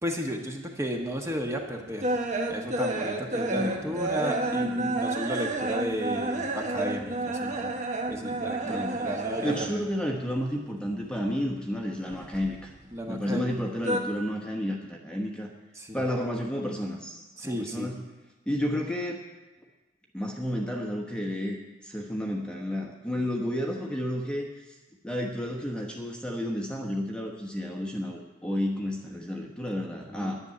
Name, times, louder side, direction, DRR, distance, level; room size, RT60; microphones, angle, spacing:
voice 1, 0.0-2.1 2.5-7.7 8.1-9.5 12.9-13.5 15.8-16.0 17.4-17.9 30.1-30.3, equal, 15° right, 1 dB, 1.3 m, -33 dB
sound 1, 1.1-9.9 10.2-11.4 11.7-13.1 13.3-14.0, right 2 dB, 40° right, 1.2 m, -30 dB
voice 2, 3.5-4.2 4.5-4.9 8.6-9.1 9.4-12.7 13.1-15.5 15.9-18.0 18.5-19.2 20.1-24.7 25.0-30.4, equal, 5° left, 0 dB, 1.1 m, -31 dB
10.5 x 7.0 x 9.5 m, 1.2 s
head